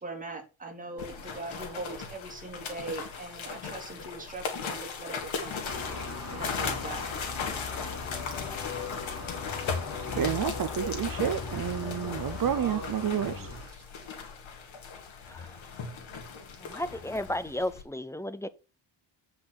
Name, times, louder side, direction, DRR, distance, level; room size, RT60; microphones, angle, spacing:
voice 1, 0.0-5.7 6.3-7.0, right 2 dB, 15° right, 2.8 m, -40 dB
sound 1, 1.0-17.8, left 5 dB, 85° left, 2.7 m, -38 dB
sound 2, 5.7-12.7, left 8 dB, 65° left, 1.4 m, -43 dB
sound 3, 5.7-13.7, left 3 dB, 35° left, 5.3 m, -39 dB
voice 2, 10.1-13.8, right 10 dB, 45° right, 0.7 m, -30 dB
voice 3, 16.6-18.5, left 1 dB, 5° left, 0.6 m, -34 dB
8.4 x 6.0 x 6.0 m
wide cardioid pair, 150°, 45 cm